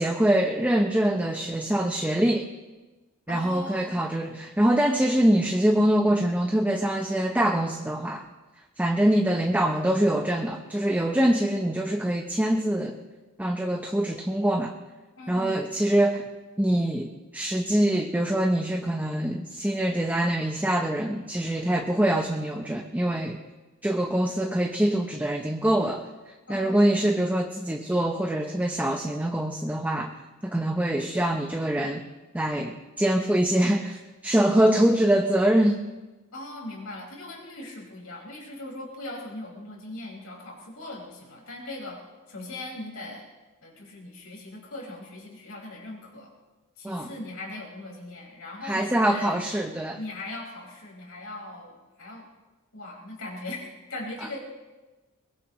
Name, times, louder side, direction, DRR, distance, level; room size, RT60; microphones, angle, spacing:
voice 1, 0.0-2.5 3.3-8.3 8.8-13.0 13.4-14.7 15.3-16.3 16.6-23.4 23.8-30.1 30.4-32.0 32.3-35.8 46.8-47.1 48.6-50.0, right 1 dB, 10° right, 4 dB, 0.7 m, -24 dB
voice 2, 3.3-4.0 15.2-15.6 26.5-27.1 34.4-34.8 36.3-42.0 42.3-43.2 43.6-46.3 46.8-49.4 49.9-52.2 52.7-54.4, left 2 dB, 80° left, -2 dB, 5.1 m, -39 dB
22.5 x 20.5 x 3.1 m, 1.2 s
head